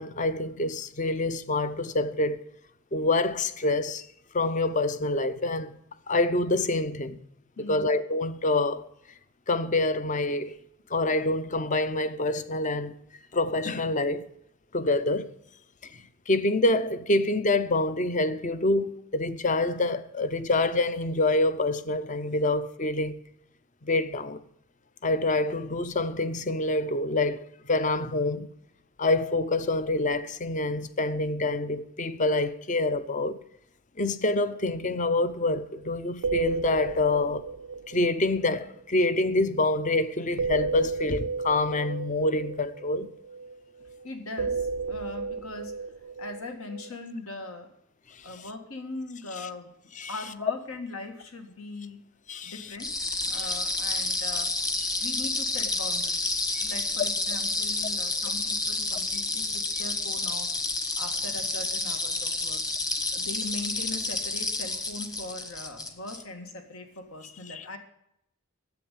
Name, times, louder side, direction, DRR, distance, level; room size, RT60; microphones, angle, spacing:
voice 1, 0.0-2.4 2.9-4.1 4.3-5.7 6.1-7.2 7.6-8.9 9.5-10.6 10.9-12.9 13.3-14.3 14.7-15.3 15.8-15.9 16.3-23.2 23.8-24.4 25.0-28.5 29.0-33.4 34.0-37.5 37.9-43.1 48.2-48.3 50.0-50.1 52.3-52.7 53.3-53.5 56.5-56.7 67.5-67.6, left 2 dB, 35° left, 0.6 m, -26 dB
voice 2, 7.6-7.9 44.0-45.8 46.2-47.7 48.2-49.7 50.1-52.0 52.4-52.9 53.3-54.5 55.0-60.5 61.0-62.6 63.1-67.8, left 2 dB, 80° left, 2.0 m, -40 dB
sound 1, 35.3-35.4 35.6-35.9 36.1-39.5 40.4-44.0 44.4-46.9, right 4 dB, 70° right, 0.4 m, -33 dB
sound 2, 52.8-66.2, left 2 dB, 20° left, 1.2 m, -30 dB
10.5 x 8.0 x 8.5 m
head